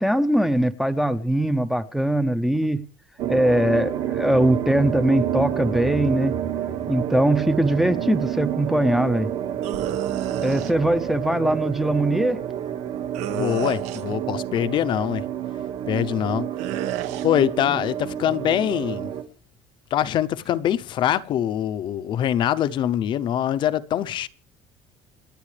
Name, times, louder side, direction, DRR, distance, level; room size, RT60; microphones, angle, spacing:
voice 1, 0.0-2.9 3.3-6.3 6.9-9.3 10.4-12.4, right 1 dB, ahead, 0.6 m, -21 dB
sound 1, 3.2-19.2, right 10 dB, 55° right, 1.9 m, -29 dB
sound 2, 9.6-10.7 13.1-14.2 16.6-17.3, right 12 dB, 80° right, 1.4 m, -31 dB
voice 2, 13.3-15.2 15.9-16.5 17.2-19.1 19.9-24.3, left 11 dB, 45° left, 0.7 m, -23 dB
28.0 x 9.3 x 3.3 m
cardioid pair, 170°, 12 cm